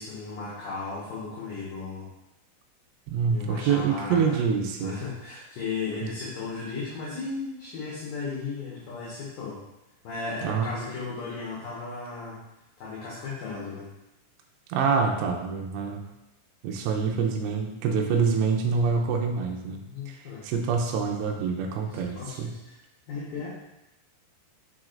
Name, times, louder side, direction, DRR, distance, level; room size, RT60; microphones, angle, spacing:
voice 1, 0.0-2.1 3.3-4.4 4.8-9.6 10.0-12.4 12.8-13.9 19.6-20.4 22.1-22.7 23.1-23.5, left 4 dB, 65° left, -7 dB, 2.3 m, -35 dB
voice 2, 3.1-5.0 6.0-6.1 10.4-10.7 14.7-16.0 16.6-19.8 20.1-20.2 20.4-22.6, right 5 dB, 80° right, 1 dB, 2.6 m, -26 dB
6.4 x 6.1 x 2.5 m, 0.94 s
omnidirectional pair, 5.4 m